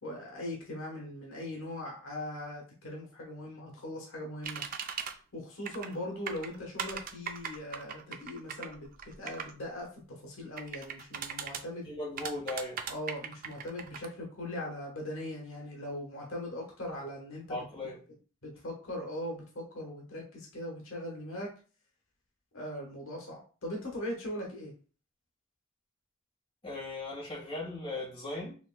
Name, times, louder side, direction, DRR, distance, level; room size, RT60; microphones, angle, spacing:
voice 1, 0.0-4.6 5.3-8.9 9.2-11.9 12.9-17.6 18.4-21.5 22.5-24.7, left 1 dB, 75° left, -1 dB, 1.2 m, -40 dB
sound 1, 4.4-5.1 5.6-5.9 6.3-9.5 10.6-11.6 12.2-14.1, right 7 dB, 45° right, 0.4 m, -38 dB
voice 2, 11.8-12.8 17.5-18.0 26.6-28.6, left 2 dB, 25° left, -5 dB, 1.7 m, -37 dB
4.9 x 3.0 x 2.3 m, 0.38 s
head